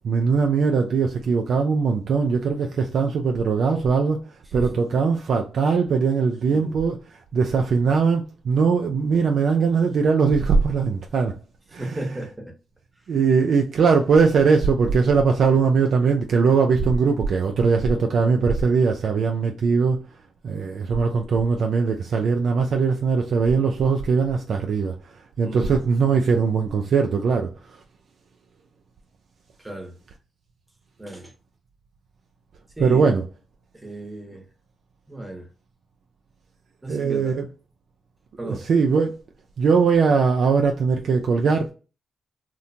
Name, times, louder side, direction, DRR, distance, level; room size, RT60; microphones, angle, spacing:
voice 1, 0.0-4.2 4.5-7.0 7.3-11.4 11.7-12.2 13.1-20.0 20.4-27.8 32.8-33.2 36.9-37.5 38.4-39.2 39.6-41.7, right 5 dB, 65° right, 0.3 m, -20 dB
voice 2, 11.8-12.5 18.1-18.3 25.5-25.7 29.6-29.9 31.0-31.3 32.8-33.1 33.7-34.4 35.1-35.5 36.8-37.4 38.4-38.6, right 1 dB, 15° right, 0.9 m, -34 dB
2.7 x 2.1 x 2.6 m
supercardioid pair, 55°, 0 cm